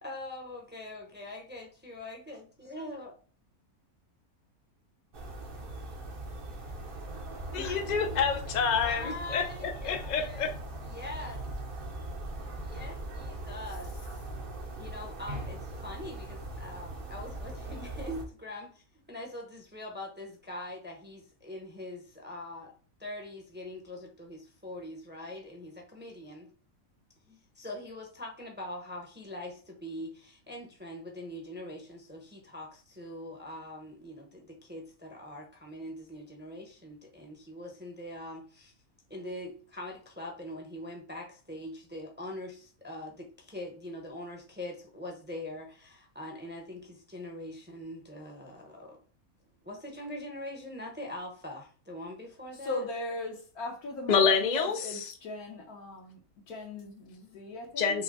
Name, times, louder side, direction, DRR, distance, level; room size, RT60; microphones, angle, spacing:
voice 1, 0.0-3.1 8.7-10.6 10.9-11.4 12.6-13.9 14.8-18.8 19.1-22.7 23.0-26.5 27.3-38.7 39.1-49.0 49.6-52.8, left 1 dB, 10° right, 0.7 m, -43 dB
sound 1, 5.1-18.3, right 1 dB, 45° right, 1.0 m, -40 dB
voice 2, 7.5-10.5 54.1-55.1 57.8-58.0, left 6 dB, 60° left, 0.4 m, -28 dB
voice 3, 52.6-56.2 56.5-58.0, left 2 dB, 80° left, 1.6 m, -38 dB
5.7 x 2.2 x 4.1 m
omnidirectional pair, 1.6 m